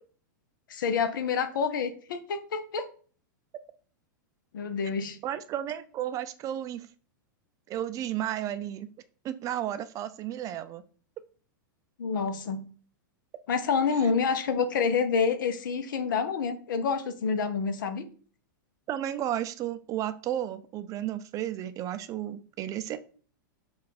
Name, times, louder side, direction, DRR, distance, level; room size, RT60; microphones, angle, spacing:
voice 1, 0.7-2.8 4.5-5.2 12.0-12.6 13.5-18.0, left 5 dB, 75° left, 10 dB, 0.7 m, -28 dB
voice 2, 5.2-6.9 7.7-8.9 9.2-10.8 14.5-14.6 18.9-23.0, right 11 dB, 30° right, 12 dB, 0.4 m, -33 dB
4.3 x 2.4 x 4.1 m, 0.42 s
hypercardioid pair, 115°, 11 cm